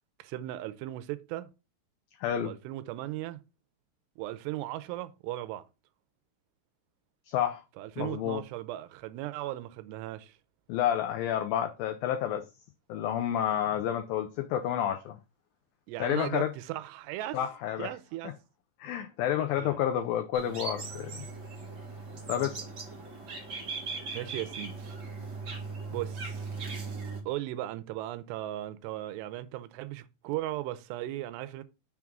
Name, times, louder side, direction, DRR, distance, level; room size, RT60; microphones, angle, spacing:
voice 1, 0.2-1.5 2.4-3.4 4.2-5.7 7.8-10.4 15.9-17.4 17.8-18.3 19.6-19.8 24.1-25.0 25.9-26.5 27.3-31.6, right 15 dB, 85° right, 2.7 m, -37 dB
voice 2, 2.2-2.5 7.3-7.6 8.0-8.4 10.7-12.5 12.9-15.2 16.0-16.5 17.3-17.9 18.8-21.3 22.3-22.6, left 10 dB, 85° left, 2.0 m, -30 dB
sound 1, 20.3-27.2, right 4 dB, 60° right, 1.1 m, -39 dB
6.4 x 3.6 x 5.9 m
omnidirectional pair, 4.8 m